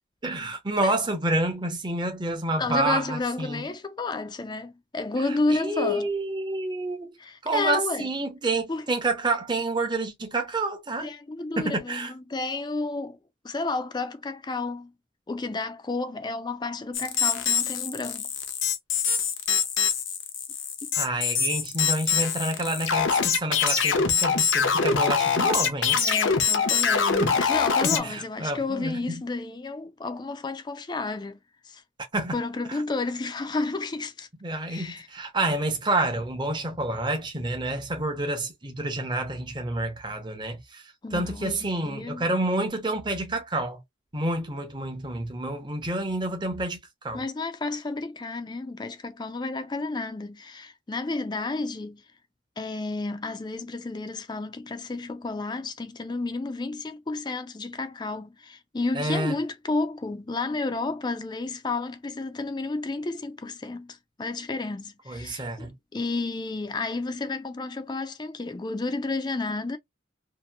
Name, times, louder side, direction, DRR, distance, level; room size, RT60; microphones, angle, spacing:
voice 1, 0.2-3.6 5.5-7.2 7.4-11.1 11.6-12.1 20.9-26.0 27.2-27.3 27.8-29.0 32.1-32.4 32.7-32.8 34.4-40.8 41.1-43.8 44.1-46.8 47.0-47.2 58.9-59.4 65.1-65.7, right 2 dB, 25° right, 0.7 m, -28 dB
voice 2, 2.6-6.1 7.2-8.1 8.7-8.9 11.0-13.2 13.4-14.9 15.3-18.3 26.0-31.4 31.6-31.8 32.3-34.3 34.7-35.1 41.0-42.3 47.1-52.0 52.6-69.8, left 3 dB, 20° left, 0.4 m, -31 dB
sound 1, 16.9-28.0, left 6 dB, 80° left, 0.7 m, -24 dB
2.8 x 2.5 x 2.3 m
head